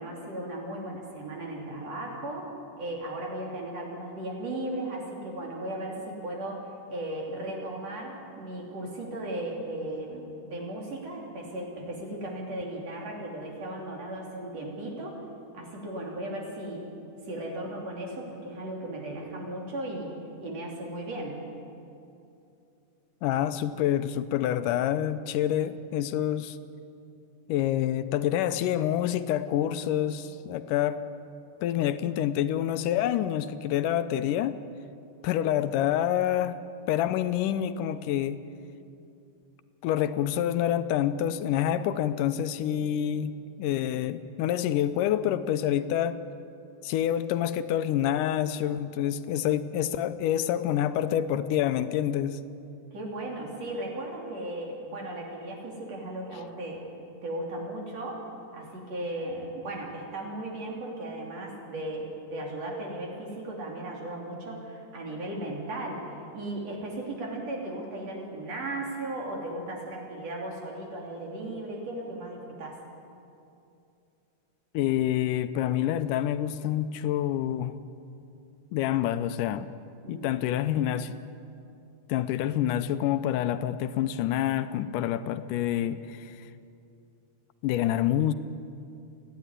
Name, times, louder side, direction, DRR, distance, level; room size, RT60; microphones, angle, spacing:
voice 1, 0.0-2.5 2.8-15.2 15.5-16.8 17.3-20.1 20.4-21.4 42.7-42.8 52.9-56.8 57.2-58.2 58.5-72.8 80.0-80.3, right 1 dB, 50° right, -1 dB, 4.2 m, -36 dB
voice 2, 23.2-26.6 27.5-31.0 31.6-34.6 35.2-36.6 36.9-38.4 39.8-43.3 43.6-46.2 46.8-52.4 74.7-77.8 78.7-79.7 80.1-81.1 82.1-86.5 87.6-88.3, left 11 dB, 85° left, 12 dB, 2.2 m, -27 dB
29.0 x 10.5 x 9.8 m, 2.6 s
omnidirectional pair, 3.7 m